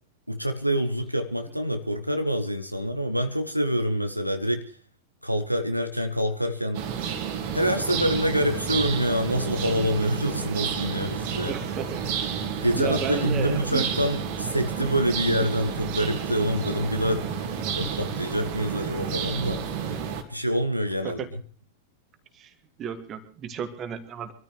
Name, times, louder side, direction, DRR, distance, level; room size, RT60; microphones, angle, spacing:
voice 1, 0.3-4.8 5.2-6.8 7.5-11.6 12.6-17.3 17.8-19.7 20.3-21.2, equal, 90° right, 7 dB, 1.1 m, -26 dB
sound 1, 6.7-20.2, right 7 dB, 50° right, 2.4 m, -31 dB
voice 2, 11.4-12.1 12.7-13.9 21.0-21.3 22.3-22.5 22.8-24.3, right 8 dB, 30° right, 8 dB, 2.3 m, -33 dB
24.5 x 13.5 x 3.3 m, 0.42 s
figure-of-eight pair, 90°, 0 cm